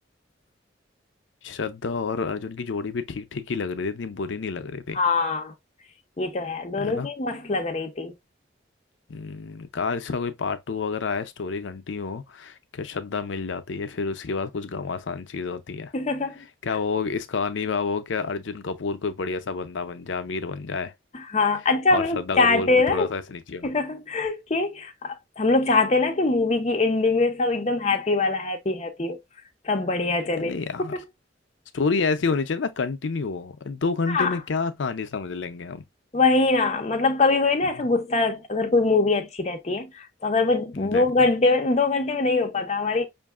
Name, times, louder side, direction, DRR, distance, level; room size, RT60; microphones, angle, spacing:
voice 1, 1.4-5.0 6.8-7.1 9.1-15.9 16.6-20.9 21.9-23.7 30.1-30.9 31.7-35.8 37.8-37.9 40.8-41.3, left 4 dB, 80° left, 0.6 m, -29 dB
voice 2, 4.9-5.5 6.2-8.1 15.9-16.4 21.1-23.1 23.6-29.2 29.6-30.5 30.8-31.0 34.1-34.4 36.1-43.1, left 3 dB, 35° left, 0.6 m, -23 dB
5.4 x 2.6 x 2.4 m
head